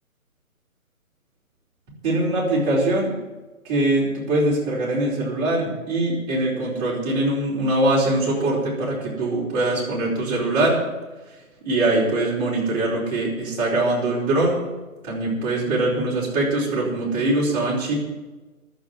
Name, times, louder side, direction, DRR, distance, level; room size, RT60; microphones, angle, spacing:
voice 1, 2.0-3.2 3.6-10.8 11.6-14.6 15.0-17.9, right 2 dB, 30° right, -5 dB, 4.7 m, -22 dB
11.5 x 8.0 x 9.5 m, 1.2 s
figure-of-eight pair, 145°, 43 cm